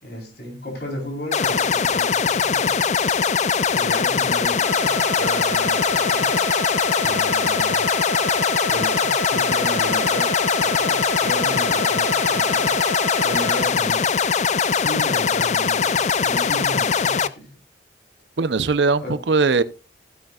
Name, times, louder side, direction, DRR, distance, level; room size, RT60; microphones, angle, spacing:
voice 1, 0.0-2.8 3.7-6.4 7.0-7.8 8.7-12.7 13.2-14.0 14.8-17.5 19.0-19.2, left 1 dB, 55° left, 4.1 m, -34 dB
sound 1, 1.3-17.3, left 6 dB, 40° left, 0.4 m, -21 dB
sound 2, 4.6-13.6, right 2 dB, 10° left, 1.7 m, -30 dB
voice 2, 18.4-19.6, right 4 dB, 70° right, 0.7 m, -19 dB
15.5 x 9.0 x 2.4 m
head